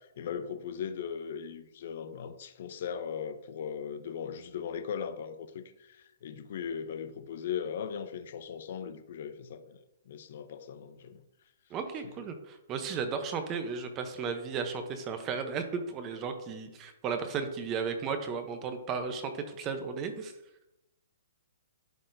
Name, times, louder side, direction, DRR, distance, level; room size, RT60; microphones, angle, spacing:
voice 1, 0.2-6.0 6.2-9.8 10.1-11.2, left 7 dB, 50° left, 0.5 m, -38 dB
voice 2, 11.7-20.3, right 5 dB, 20° right, 0.7 m, -34 dB
11.5 x 4.1 x 2.6 m
hypercardioid pair, 165°, 0 cm